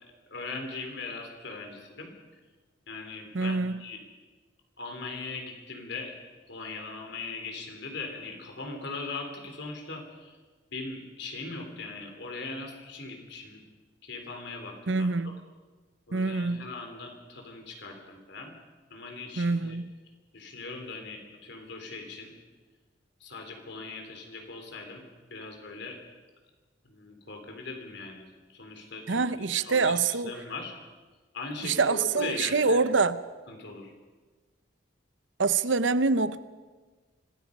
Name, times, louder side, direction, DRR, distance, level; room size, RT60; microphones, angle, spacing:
voice 1, 0.3-2.1 2.9-4.0 4.8-6.1 6.5-10.4 10.7-13.6 14.0-15.3 16.1-18.5 18.9-19.8 20.3-22.3 23.2-25.0 25.3-26.0 26.8-29.9 30.2-30.7 31.3-32.8 33.5-33.9, left 3 dB, 65° left, 3.9 m, -40 dB
voice 2, 3.3-3.8 14.9-15.4 16.1-16.7 19.4-19.9 29.1-30.3 31.6-33.2 35.4-36.4, right 4 dB, 70° right, 0.9 m, -25 dB
25.5 x 19.0 x 5.4 m
head